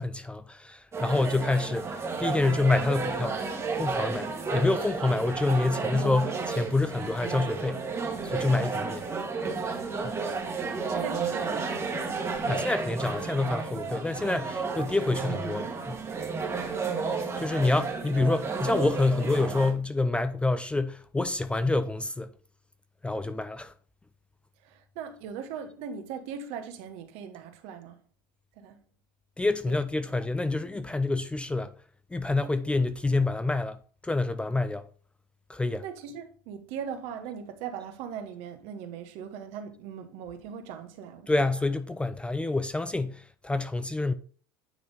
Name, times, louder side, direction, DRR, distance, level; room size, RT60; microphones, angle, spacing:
voice 1, 0.0-3.5 3.8-7.8 8.2-9.1 12.5-16.0 17.4-22.3 23.0-23.7 29.4-31.7 32.1-34.9 35.5-35.8 41.3-44.1, left 2 dB, 10° left, 0.4 m, -27 dB
sound 1, 0.9-19.7, right 4 dB, 25° right, 1.4 m, -32 dB
voice 2, 10.6-12.7 13.7-13.8 16.4-16.9 24.6-28.0 28.6-28.8 29.7-29.8 35.8-41.3, right 7 dB, 60° right, 1.0 m, -40 dB
9.2 x 3.4 x 3.9 m
hypercardioid pair, 90°, 11 cm